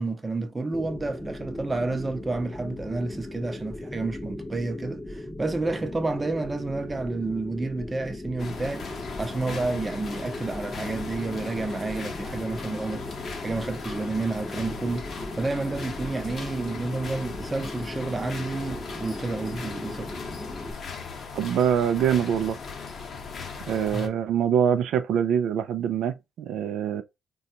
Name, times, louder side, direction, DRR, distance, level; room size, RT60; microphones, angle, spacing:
voice 1, 0.0-20.1 23.9-24.1, right 3 dB, 20° right, 0.6 m, -30 dB
sound 1, 0.7-20.7, left 1 dB, 15° left, 0.7 m, -38 dB
sound 2, 8.4-24.1, left 5 dB, 50° left, 0.8 m, -38 dB
voice 2, 21.3-22.6 23.7-27.0, right 8 dB, 80° right, 0.3 m, -24 dB
3.8 x 2.3 x 2.7 m
cardioid pair, 90°, 0 cm